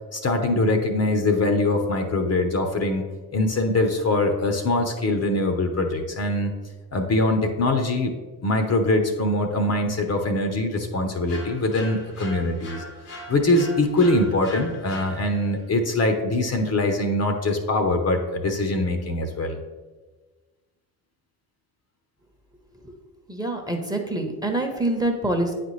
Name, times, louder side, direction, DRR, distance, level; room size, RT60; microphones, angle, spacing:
voice 1, 0.1-6.5 6.9-8.1 8.4-12.8 13.3-19.6, left 2 dB, 35° left, 5 dB, 0.9 m, -23 dB
sound 1, 11.3-15.6, left 1 dB, 85° left, 1.6 m, -40 dB
voice 2, 23.3-25.5, right 1 dB, 10° right, 3 dB, 1.0 m, -25 dB
8.9 x 4.2 x 3.2 m, 1.3 s
hypercardioid pair, 60°, 45 cm